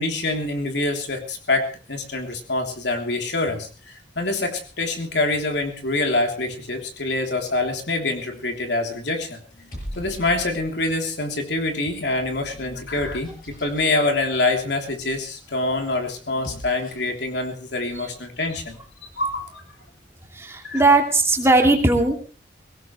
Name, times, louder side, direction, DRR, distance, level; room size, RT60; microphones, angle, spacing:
voice 1, 0.0-9.4 9.9-18.8 19.2-19.6 20.6-20.8, left 2 dB, 75° left, 3 dB, 3.2 m, -25 dB
sound 1, 8.2-8.7 9.5-10.8 11.6-13.9 16.2-17.2, equal, 50° left, 6.9 m, -41 dB
voice 2, 20.3-22.2, right 2 dB, 15° right, 2 dB, 2.5 m, -18 dB
22.0 x 17.5 x 3.2 m, 0.35 s
head